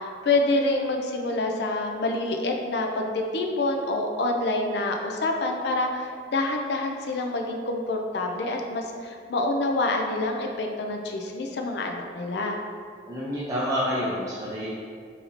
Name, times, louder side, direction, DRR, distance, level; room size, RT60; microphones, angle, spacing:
voice 1, 0.0-12.6, left 2 dB, 70° left, 2 dB, 0.5 m, -27 dB
voice 2, 13.0-14.7, equal, 20° right, -9 dB, 0.6 m, -28 dB
4.3 x 2.7 x 4.0 m, 2.1 s
head